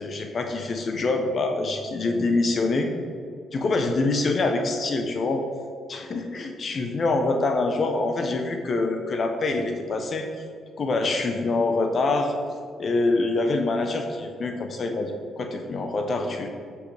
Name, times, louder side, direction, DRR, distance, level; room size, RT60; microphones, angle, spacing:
voice 1, 0.0-2.9 3.5-5.4 5.9-10.3 10.8-12.3 12.8-16.5, left 3 dB, 45° left, 5 dB, 0.8 m, -25 dB
9.6 x 6.1 x 3.4 m, 2.2 s
cardioid pair, 90°, 0 cm